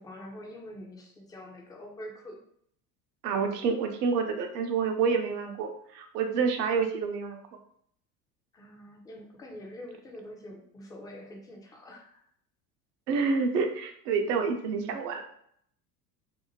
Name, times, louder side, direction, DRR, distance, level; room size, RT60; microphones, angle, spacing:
voice 1, 0.0-2.4 8.5-12.3, left 1 dB, 10° left, 0 dB, 0.3 m, -45 dB
voice 2, 3.2-7.4 13.1-15.2, right 5 dB, 70° right, 5 dB, 0.6 m, -28 dB
2.7 x 2.1 x 2.8 m, 0.68 s
hypercardioid pair, 70°, 50 cm